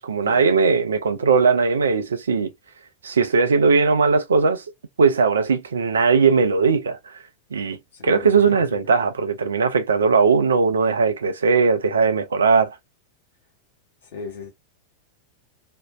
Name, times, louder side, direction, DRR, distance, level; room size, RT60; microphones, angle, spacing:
voice 1, 0.0-2.5 3.0-4.6 5.0-7.0 7.5-7.8 8.0-12.7, right 5 dB, 70° right, 0.5 m, -19 dB
voice 2, 14.1-14.5, left 5 dB, 55° left, 1.1 m, -35 dB
2.6 x 2.1 x 2.2 m
figure-of-eight pair, 90°, 0 cm